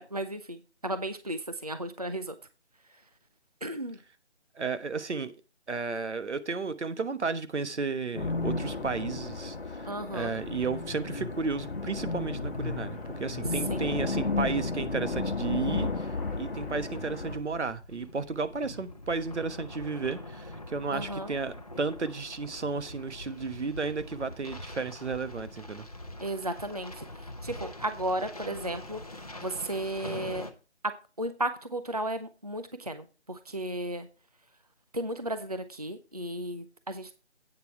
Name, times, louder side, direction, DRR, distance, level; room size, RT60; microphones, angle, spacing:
voice 1, 0.0-2.3 3.6-4.0 9.9-10.3 13.7-13.9 20.9-21.3 26.2-29.0 29.4-30.5 30.8-34.1 34.9-37.1, right 1 dB, 35° right, 0.6 m, -34 dB
voice 2, 4.6-5.3 5.7-25.9, right 4 dB, 90° right, 1.3 m, -33 dB
sound 1, 8.1-17.4, left 3 dB, 55° left, 1.2 m, -33 dB
sound 2, 11.4-30.5, left 1 dB, 35° left, 0.8 m, -44 dB
8.8 x 7.3 x 4.6 m
figure-of-eight pair, 180°, 34 cm